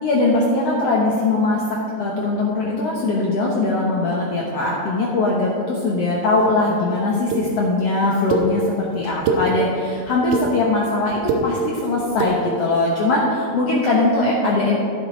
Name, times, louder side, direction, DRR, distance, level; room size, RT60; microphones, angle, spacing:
voice 1, 0.0-14.8, left 2 dB, 80° left, -3 dB, 1.4 m, -21 dB
sound 1, 7.3-7.4 8.3-8.4 9.0-9.4 10.1-10.4 11.1-11.4 12.1-12.3, right 6 dB, 80° right, 2.8 m, -21 dB
14.5 x 8.5 x 3.8 m, 2.4 s
omnidirectional pair, 4.3 m